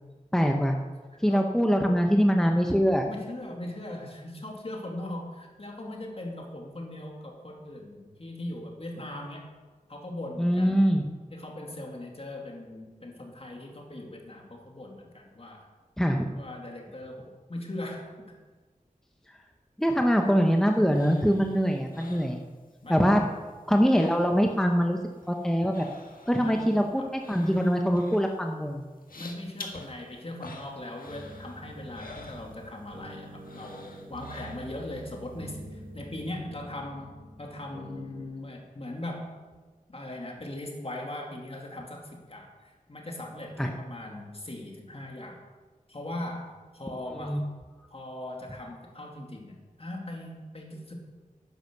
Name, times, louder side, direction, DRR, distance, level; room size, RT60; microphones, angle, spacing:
voice 1, 0.3-0.8 1.2-3.1 10.4-11.0 16.0-16.3 19.8-22.4 22.9-23.2 23.7-25.0 25.3-25.9 26.3-28.8 43.6-43.7 47.2-47.4, equal, 5° left, 3 dB, 1.0 m, -23 dB
voice 2, 1.1-1.6 3.1-9.5 9.9-10.9 11.3-15.7 16.3-18.4 22.8-23.3 26.4-27.1 29.1-37.1 37.4-39.3 39.9-45.4 45.9-47.4 47.9-51.0, left 1 dB, 45° left, 1 dB, 2.6 m, -40 dB
sound 1, 20.0-23.0 23.3-24.7 24.9-33.1 33.4-35.0 35.4-35.5, left 3 dB, 90° left, 1.7 m, -48 dB
sound 2, 31.0-38.2, right 1 dB, 80° right, 3.2 m, -46 dB
11.0 x 9.9 x 6.8 m, 1.3 s
wide cardioid pair, 75°, 14 cm